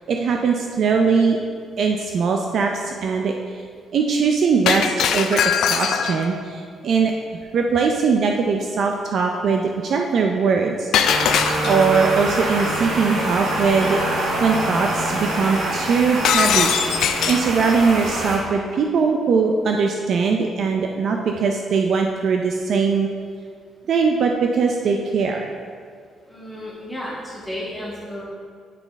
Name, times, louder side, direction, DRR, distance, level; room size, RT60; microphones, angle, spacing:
voice 1, 0.1-1.4 1.8-3.6 3.9-7.1 7.5-10.9 11.6-14.0 14.4-23.1 23.9-25.5, right 5 dB, 50° right, 2 dB, 0.4 m, -21 dB
Shatter, 4.7-6.3 10.9-12.0 16.2-17.5, left 8 dB, 70° left, 0.3 m, -21 dB
sound 1, 11.0-18.4, right 1 dB, 90° right, 1.2 m, -25 dB
voice 2, 26.3-28.2, left 1 dB, ahead, -7 dB, 1.5 m, -33 dB
9.0 x 4.0 x 3.5 m, 2.1 s
cardioid pair, 165°, 0 cm